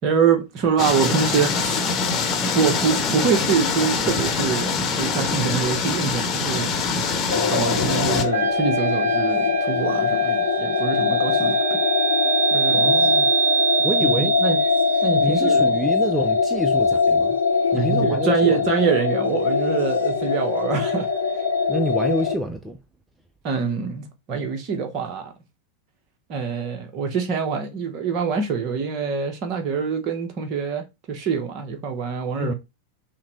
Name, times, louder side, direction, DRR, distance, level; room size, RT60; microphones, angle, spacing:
voice 1, 0.0-1.9 2.5-6.7 7.5-11.6 12.5-12.9 14.0-14.6 15.0-15.7 17.7-21.1 23.4-25.3 26.3-32.5, right 6 dB, 40° right, 1.1 m, -25 dB
sound 1, 0.8-8.2, left 4 dB, 30° left, 1.1 m, -24 dB
sound 2, 7.3-22.4, left 3 dB, 70° left, 1.0 m, -21 dB
Wind instrument woodwind instrument, 8.3-14.4, right 4 dB, 60° right, 0.7 m, -30 dB
voice 2, 12.7-13.3 13.8-14.4 15.2-17.4 17.7-18.7 21.7-22.8 32.4-32.5, equal, 5° right, 0.5 m, -27 dB
5.8 x 2.3 x 4.0 m
figure-of-eight pair, 90°, 0 cm